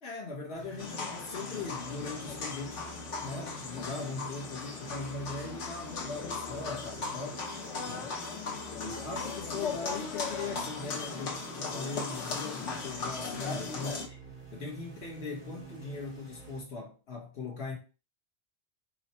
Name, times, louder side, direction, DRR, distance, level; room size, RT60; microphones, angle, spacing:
voice 1, 0.0-2.9 3.2-7.4 7.9-8.1 8.7-17.8, left 3 dB, 65° left, 1.4 m, -40 dB
sound 1, 0.5-16.6, right 5 dB, 70° right, 1.9 m, -50 dB
sound 2, 0.8-14.1, left 4 dB, 90° left, 1.3 m, -38 dB
4.7 x 2.1 x 4.2 m
omnidirectional pair, 1.2 m